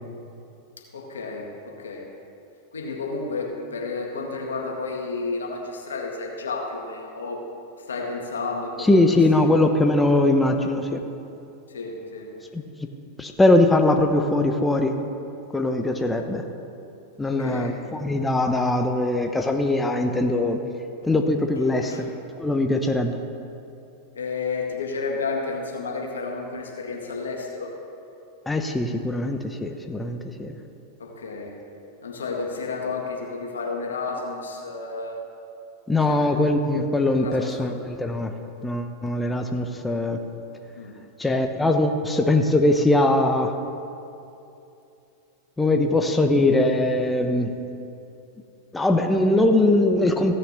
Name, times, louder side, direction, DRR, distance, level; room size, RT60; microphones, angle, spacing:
voice 1, 0.9-2.1 2.7-7.4 7.9-9.2 11.7-12.3 17.2-17.7 21.8-22.0 24.1-27.7 31.0-31.5 32.0-35.2 36.1-36.4 37.2-37.7 40.8-40.9, left 4 dB, 85° left, 1 dB, 1.9 m, -31 dB
voice 2, 8.8-11.0 12.5-12.6 13.2-14.9 15.5-16.4 17.2-20.6 21.0-22.1 22.4-23.2 28.5-30.5 35.9-38.3 38.6-40.2 41.2-43.5 45.6-47.5 48.7-50.3, left 2 dB, 10° left, 5 dB, 0.9 m, -21 dB
15.5 x 6.6 x 6.7 m, 2.7 s
hypercardioid pair, 100°, 0 cm